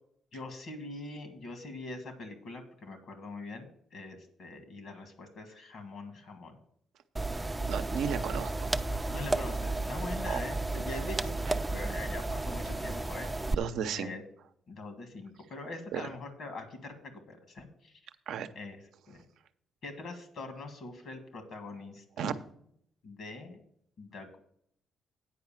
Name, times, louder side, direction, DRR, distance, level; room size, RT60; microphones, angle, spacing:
voice 1, 0.3-6.5 9.1-13.6 14.0-14.2 14.7-18.0 18.6-18.8 19.1-19.2 19.8-22.3 23.0-23.6 24.0-24.4, left 2 dB, 65° left, 7 dB, 1.8 m, -43 dB
sound 1, 7.2-13.5, right 2 dB, 15° right, 0.4 m, -33 dB
voice 2, 7.3-8.7 10.2-10.4 11.5-11.6 13.5-14.1 15.9-16.0 18.3-18.5 22.2-22.3, right 8 dB, 80° right, 10 dB, 0.7 m, -34 dB
9.4 x 4.8 x 7.3 m, 0.68 s
cardioid pair, 90°, 0 cm